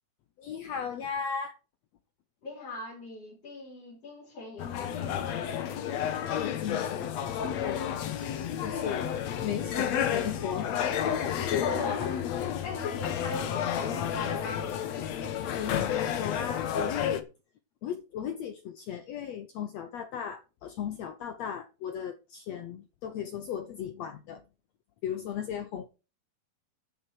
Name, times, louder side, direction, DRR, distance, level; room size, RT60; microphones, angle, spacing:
voice 1, 0.4-1.6 6.3-8.0 8.5-9.1 9.4-11.7 15.5-17.2 17.8-24.4 25.0-25.9, left 8 dB, 85° left, 1.5 m, -36 dB
voice 2, 2.4-5.3 11.5-14.7, left 3 dB, 40° left, 5.2 m, -40 dB
sound 1, 4.6-17.2, left 9 dB, 60° left, 1.9 m, -31 dB
12.5 x 7.2 x 4.8 m
omnidirectional pair, 4.3 m